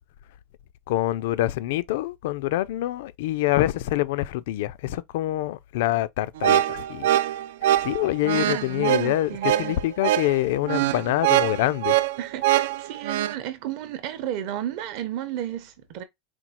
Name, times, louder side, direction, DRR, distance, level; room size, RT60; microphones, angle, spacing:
voice 1, 0.9-7.1 7.6-11.9, left 15 dB, 65° left, 0.4 m, -26 dB
sound 1, 6.4-13.3, right 13 dB, 80° right, 0.3 m, -23 dB
voice 2, 8.3-9.7 10.7-11.0 12.2-16.0, right 11 dB, 45° right, 0.7 m, -33 dB
4.3 x 2.3 x 4.2 m
supercardioid pair, 175°, 0 cm